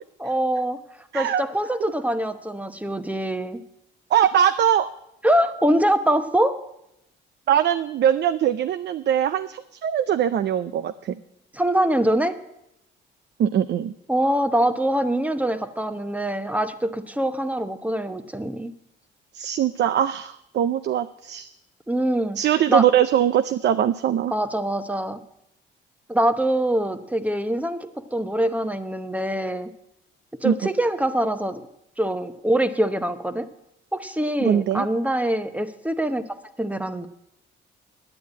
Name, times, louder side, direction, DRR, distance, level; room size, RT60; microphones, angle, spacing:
voice 1, 0.2-0.8 1.1-3.6 5.2-6.6 11.5-12.3 14.1-18.7 21.9-22.4 22.7-22.8 24.3-25.2 26.1-29.7 30.4-31.6 32.0-33.5 33.9-36.2 36.6-37.1, right 1 dB, 5° right, 10 dB, 0.9 m, -24 dB
voice 2, 4.1-4.9 7.5-11.1 13.4-13.9 19.3-21.5 22.4-24.3 30.4-30.5 34.4-34.9, right 10 dB, 60° right, 12 dB, 0.5 m, -21 dB
9.9 x 9.3 x 8.4 m, 0.83 s
cardioid pair, 90°, 20 cm